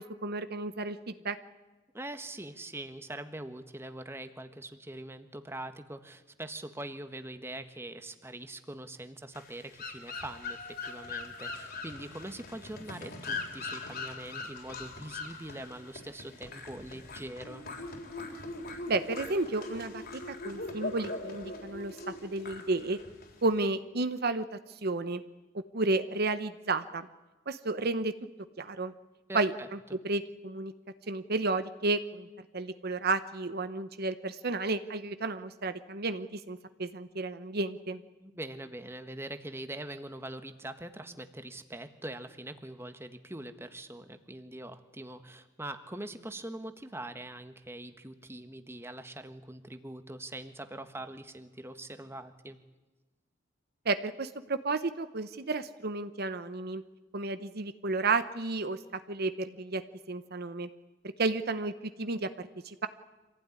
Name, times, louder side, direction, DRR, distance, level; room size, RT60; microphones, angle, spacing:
voice 1, 0.0-1.4 18.9-20.0 20.4-23.0 23.4-25.2 25.7-27.1 27.5-28.1 28.6-28.9 29.3-29.5 30.0-30.7 31.1-32.3 32.5-38.0 53.8-56.8 57.1-58.8 59.1-59.8 60.1-60.7 61.2-61.7 62.0-62.9, right 3 dB, 55° right, 11 dB, 1.0 m, -32 dB
voice 2, 1.9-17.6 29.3-30.0 38.2-52.6, right 1 dB, 15° right, 8 dB, 1.4 m, -43 dB
sound 1, 9.3-23.7, left 3 dB, 55° left, 3.9 m, -41 dB
26.0 x 16.0 x 9.8 m, 1.1 s
head